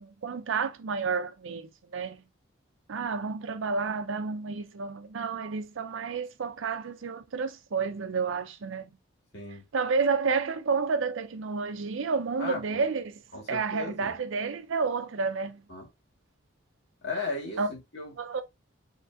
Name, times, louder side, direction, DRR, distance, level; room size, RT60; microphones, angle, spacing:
voice 1, 0.0-2.2 2.9-8.9 9.7-13.2 13.5-15.6 17.6-17.7 18.2-18.4, right 5 dB, 80° right, 0.5 m, -30 dB
voice 2, 9.3-9.6 12.4-12.8 13.3-14.1 15.7-15.9 17.0-18.1, left 3 dB, 55° left, 1.9 m, -36 dB
5.2 x 3.2 x 2.3 m
head